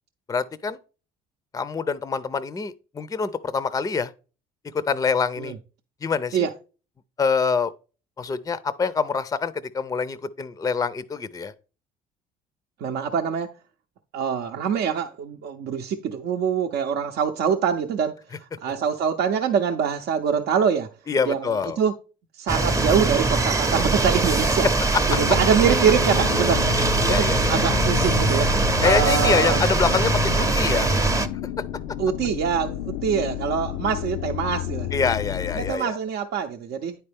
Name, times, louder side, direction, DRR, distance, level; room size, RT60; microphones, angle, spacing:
voice 1, 0.3-0.8 1.5-4.1 4.7-5.5 6.0-6.5 7.2-7.7 8.2-11.5 21.1-21.8 26.8-27.6 28.8-30.9 34.9-36.0, left 5 dB, 20° left, 0.5 m, -25 dB
voice 2, 12.8-13.5 14.1-20.9 21.2-21.9 22.3-24.7 25.2-26.6 27.1-28.5 28.8-29.6 32.0-34.9 35.6-37.0, right 7 dB, 60° right, 0.6 m, -24 dB
sound 1, 22.5-31.3, right 3 dB, 15° right, 0.7 m, -22 dB
sound 2, 25.1-35.7, left 10 dB, 75° left, 0.5 m, -31 dB
9.4 x 4.4 x 3.4 m
supercardioid pair, 75°, 19 cm